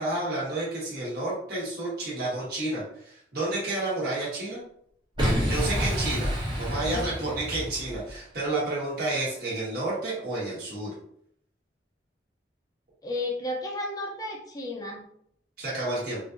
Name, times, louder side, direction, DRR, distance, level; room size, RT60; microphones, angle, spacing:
voice 1, 0.0-4.6 5.5-6.3 6.6-10.9 15.6-16.2, right 2 dB, 55° right, -7 dB, 1.3 m, -30 dB
Boom, 5.2-8.1, equal, 25° right, 0.9 m, -28 dB
voice 2, 6.7-7.1 13.0-15.1, left 2 dB, 20° left, 0 dB, 0.5 m, -33 dB
3.5 x 2.5 x 2.5 m, 0.68 s
head